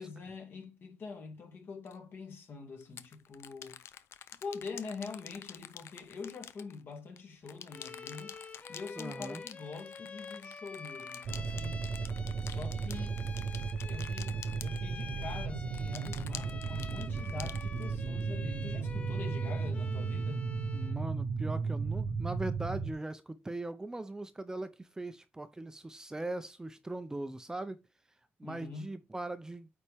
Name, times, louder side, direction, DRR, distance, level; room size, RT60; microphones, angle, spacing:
voice 1, 0.0-3.8 4.4-8.4 8.7-11.9 12.4-13.2 13.8-20.5 28.4-28.9, left 4 dB, 55° left, 2.3 m, -44 dB
sound 1, 1.9-2.0 2.8-7.2 7.5-15.3 15.7-18.2, left 10 dB, 75° left, 0.6 m, -48 dB
Bowed string instrument, 7.7-21.1, left 4 dB, 30° left, 0.6 m, -48 dB
voice 2, 9.0-9.4 20.7-27.8 28.4-29.7, right 2 dB, 15° right, 0.6 m, -40 dB
sound 2, 11.2-22.9, right 5 dB, 65° right, 0.9 m, -35 dB
8.6 x 4.3 x 3.5 m
cardioid pair, 110°, 4 cm